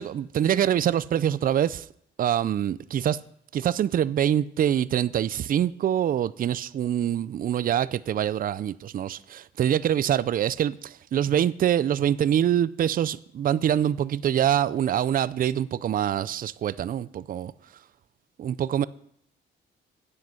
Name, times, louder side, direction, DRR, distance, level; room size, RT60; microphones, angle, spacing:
voice 1, 0.0-1.9 2.2-3.2 3.5-17.5 18.4-18.9, right 10 dB, 45° right, 0.4 m, -25 dB
9.4 x 7.8 x 5.9 m
cardioid pair, 90°, 20 cm